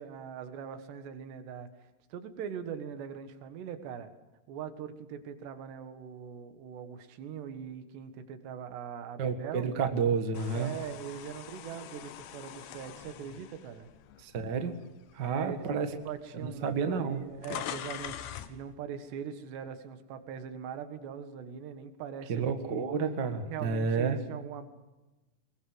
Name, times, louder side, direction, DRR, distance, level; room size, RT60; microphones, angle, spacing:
voice 1, 0.0-1.7 2.1-4.1 4.5-9.7 10.5-13.9 15.2-22.9 23.5-24.7, right 8 dB, 85° right, 9 dB, 3.8 m, -41 dB
voice 2, 9.2-10.7 14.2-14.8 15.1-15.9 16.4-17.2 22.3-24.2, right 5 dB, 55° right, 7 dB, 1.2 m, -30 dB
sound 1, 10.3-14.6 15.1-15.3 16.2-16.3 16.5-18.6, left 11 dB, 85° left, 3.3 m, -43 dB
22.0 x 22.0 x 8.0 m, 1.1 s
omnidirectional pair, 4.8 m